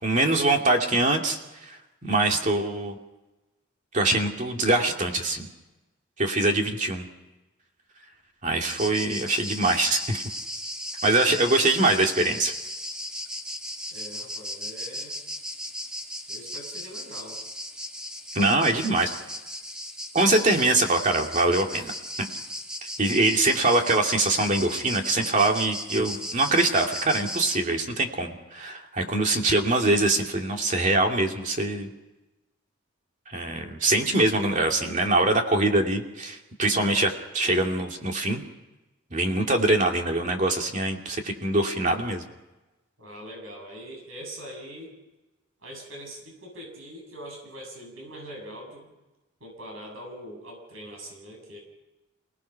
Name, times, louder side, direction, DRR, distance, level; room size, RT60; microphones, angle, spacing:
voice 1, 0.0-1.4 2.0-3.0 3.9-5.5 6.2-7.1 8.4-10.2 11.0-12.5 18.3-19.1 20.1-21.9 23.0-31.9 33.3-38.4 39.1-42.2, right 2 dB, 40° right, 2 dB, 2.5 m, -23 dB
sound 1, 8.7-27.6, left 1 dB, 5° right, 1.8 m, -36 dB
voice 2, 13.9-15.2 16.3-17.4 43.0-44.9 45.6-48.9 49.4-51.6, equal, 85° right, 1 dB, 7.6 m, -42 dB
29.0 x 18.5 x 5.8 m, 1.1 s
head